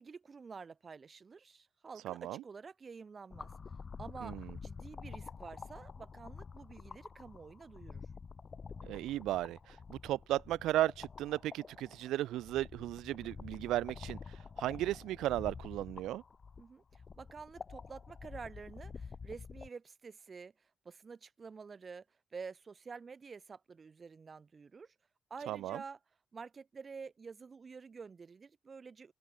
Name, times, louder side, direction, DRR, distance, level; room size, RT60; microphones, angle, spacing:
voice 1, 0.0-3.5 4.0-8.0 16.6-22.1 22.3-24.9 25.3-26.0 26.3-29.1, right 5 dB, 35° right, 6.1 m, -49 dB
voice 2, 2.0-2.4 4.2-4.6 8.8-14.2 14.6-16.2 25.5-25.8, right 14 dB, 85° right, 1.2 m, -35 dB
sound 1, 3.3-19.7, left 5 dB, 40° left, 2.9 m, -49 dB
cardioid pair, 90°, 0 cm